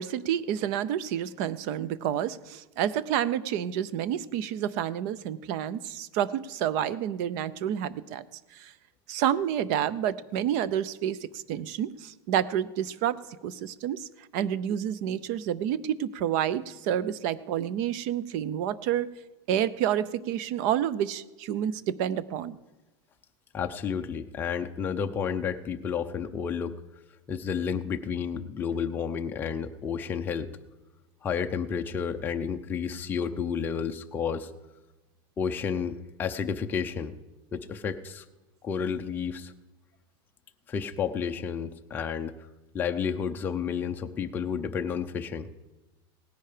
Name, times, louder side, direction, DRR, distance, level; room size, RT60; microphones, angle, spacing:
voice 1, 0.0-8.2 8.5-8.7 9.1-14.1 14.3-19.1 19.5-22.6, right 10 dB, 45° right, 18 dB, 0.6 m, -29 dB
voice 2, 23.5-26.7 27.3-30.5 31.2-34.5 35.4-37.1 37.5-38.2 38.6-39.5 40.7-42.3 42.7-45.5, left 7 dB, 15° left, 4 dB, 0.5 m, -31 dB
17.5 x 10.0 x 5.0 m, 1.1 s
supercardioid pair, 170°, 13 cm